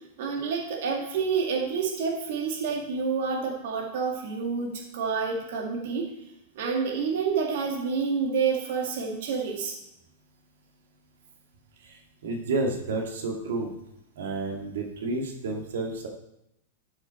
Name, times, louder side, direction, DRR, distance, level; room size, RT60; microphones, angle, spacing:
voice 1, 0.2-6.1 6.6-9.7, right 5 dB, 55° right, 0 dB, 2.0 m, -28 dB
voice 2, 11.8-13.7 14.2-16.1, right 3 dB, 90° right, 0 dB, 2.3 m, -30 dB
13.0 x 6.6 x 4.3 m, 0.82 s
supercardioid pair, 175°, 0 cm